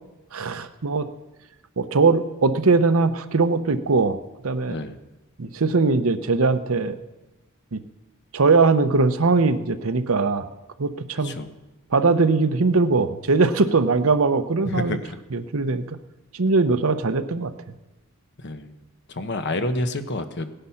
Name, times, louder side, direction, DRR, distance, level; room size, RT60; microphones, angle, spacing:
voice 1, 0.3-1.1 1.8-4.2 4.4-4.8 5.4-7.0 7.7-7.8 8.3-10.5 10.8-11.3 11.9-15.0 15.3-16.0 16.3-17.5, right 3 dB, 75° right, 11 dB, 0.8 m, -20 dB
voice 2, 4.7-5.0 11.2-11.5 14.6-15.2 18.4-18.7 19.1-20.5, left 2 dB, 55° left, 8 dB, 1.0 m, -29 dB
17.0 x 10.0 x 5.8 m, 1.1 s
head